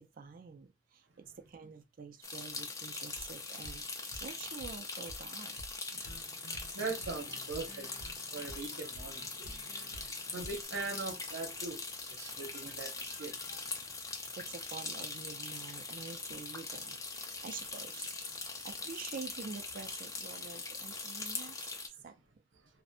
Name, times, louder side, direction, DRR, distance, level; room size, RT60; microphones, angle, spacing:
voice 1, 0.0-5.6 14.3-18.1 18.6-21.7 22.0-22.1, right 5 dB, 45° right, 0.3 m, -47 dB
sound 1, 2.2-21.9, left 3 dB, 15° left, 0.4 m, -42 dB
sound 2, 3.1-3.3 3.6-3.8 4.1-4.3 4.6-4.8 5.1-5.2 5.6-5.7 6.0-10.6, equal, 85° left, 0.8 m, -50 dB
voice 2, 6.7-8.0 8.3-9.5 9.9-10.0 10.3-13.6, right 3 dB, 80° right, 0.7 m, -41 dB
2.5 x 2.1 x 2.4 m
head